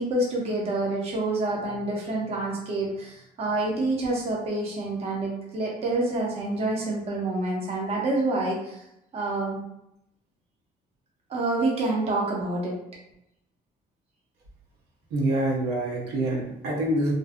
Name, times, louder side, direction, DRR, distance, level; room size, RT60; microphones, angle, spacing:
voice 1, 0.0-8.8 9.1-9.6 11.3-12.8, right 2 dB, 35° right, -2 dB, 0.6 m, -27 dB
voice 2, 15.1-17.1, right 1 dB, 80° right, -3 dB, 0.8 m, -26 dB
2.5 x 2.2 x 2.4 m, 0.82 s
cardioid pair, 110°, 17 cm